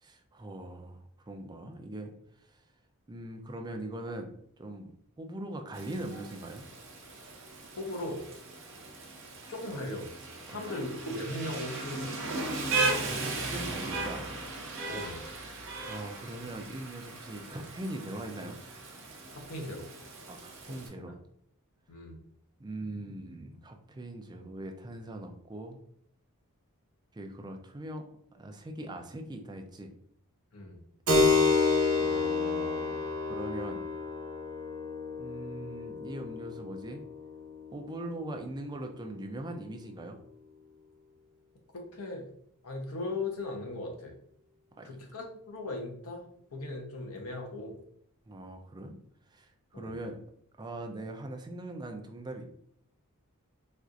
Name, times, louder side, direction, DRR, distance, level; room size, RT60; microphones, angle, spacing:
voice 1, 0.0-2.1 2.5-2.6 3.1-4.3 4.6-4.9 5.2-6.6 10.5-10.8 12.7-14.3 15.9-18.6 20.3-21.2 22.6-25.8 27.1-28.0 28.3-29.9 32.0-33.8 35.2-37.0 37.7-40.2 44.8-44.9 48.3-48.9 49.3-50.2 50.6-52.5, right 1 dB, 20° right, 4 dB, 0.4 m, -41 dB
Rain, 5.7-20.9, right 3 dB, 60° right, 0.7 m, -37 dB
voice 2, 7.7-8.2 9.5-10.1 10.5-12.1 14.9-15.2 19.3-19.9 20.9-21.0 21.9-22.1 30.5-30.8 41.7-42.3 42.6-44.1 44.8-46.2 46.5-47.8 49.7-50.0, left 2 dB, 75° left, 2 dB, 0.8 m, -38 dB
Keyboard (musical), 31.1-39.3, left 3 dB, 80° right, 1.0 m, -30 dB
4.3 x 2.4 x 2.4 m, 0.68 s
head